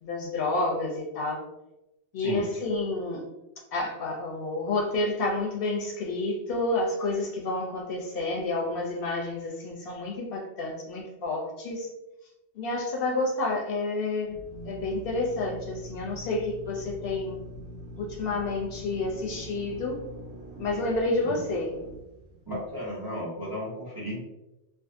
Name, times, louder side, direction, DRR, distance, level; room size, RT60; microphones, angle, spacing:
voice 1, 0.0-1.4 2.1-3.2 3.7-11.9 12.6-14.4 14.6-17.4 18.0-20.0 20.6-21.8, left 2 dB, 65° left, -1 dB, 0.7 m, -29 dB
Drill, 14.3-22.9, equal, 75° right, 1.0 m, -43 dB
voice 2, 22.5-24.2, equal, 25° right, -6 dB, 0.6 m, -34 dB
2.5 x 2.4 x 2.4 m, 0.95 s
omnidirectional pair, 1.1 m